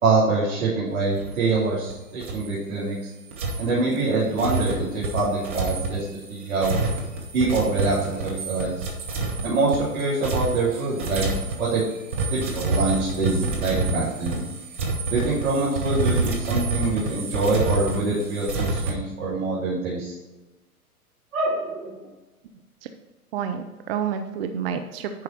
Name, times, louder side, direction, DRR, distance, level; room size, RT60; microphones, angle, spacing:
voice 1, 0.0-3.0 3.6-6.7 7.3-8.9 9.4-11.3 11.6-11.8 12.3-14.4 15.1-20.1 21.3-22.0, right 3 dB, 65° right, -7 dB, 2.9 m, -25 dB
sound 1, 1.2-1.9 2.2-2.5 3.3-18.9, right 2 dB, 10° right, 0.3 m, -28 dB
voice 2, 23.3-25.2, right 8 dB, 40° right, 7 dB, 0.7 m, -29 dB
10.0 x 4.9 x 4.4 m, 1.1 s
figure-of-eight pair, 110°, 45 cm